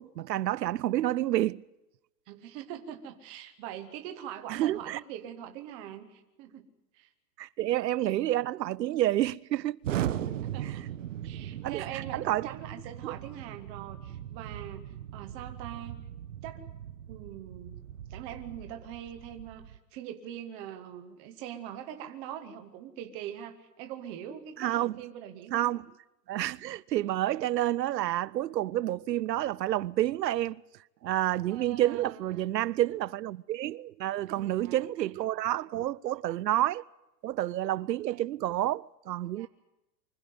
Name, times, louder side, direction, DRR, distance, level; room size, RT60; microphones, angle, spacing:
voice 1, 0.0-1.6 4.5-5.0 7.4-9.8 10.2-10.8 11.6-12.5 13.0-13.1 24.6-25.0 25.5-25.8 26.3-30.6 31.0-36.8 37.2-39.5, right 14 dB, 75° right, 0.7 m, -29 dB
voice 2, 2.3-6.7 6.9-7.1 10.4-10.9 11.2-16.0 16.4-16.6 17.1-17.8 18.1-25.8 31.5-32.7 34.3-34.8 39.4-39.5, right 10 dB, 10° right, 0.8 m, -43 dB
Explosion, 9.8-19.8, right 11 dB, 50° right, 1.3 m, -38 dB
24.5 x 15.5 x 9.3 m
hypercardioid pair, 175°, 50 cm